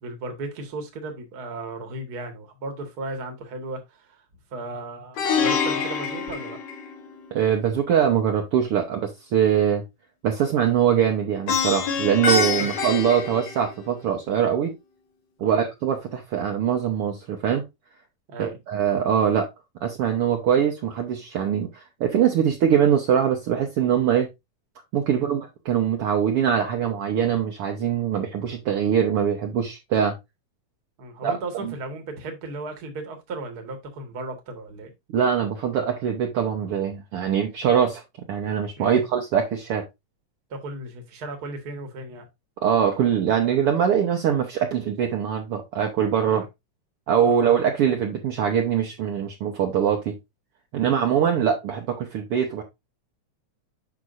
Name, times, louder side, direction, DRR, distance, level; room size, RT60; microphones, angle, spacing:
voice 1, 0.0-4.2 4.5-6.6 11.9-12.0 15.4-15.6 18.3-18.6 25.1-25.3 31.0-34.9 38.8-39.0 40.5-42.2 46.2-46.4 47.2-47.5 50.8-51.0, right 2 dB, 45° right, 1.3 m, -36 dB
Plucked string instrument, 5.2-7.3 11.5-14.1, left 5 dB, 65° left, 2.3 m, -26 dB
voice 2, 7.3-9.8 10.2-14.7 15.4-17.6 18.4-19.5 19.8-24.3 24.9-30.1 31.2-31.4 31.6-31.7 35.1-38.0 38.3-39.8 42.6-46.4 47.1-50.2 50.7-52.6, right 8 dB, 70° right, 1.3 m, -23 dB
8.1 x 6.0 x 2.6 m
omnidirectional pair, 4.0 m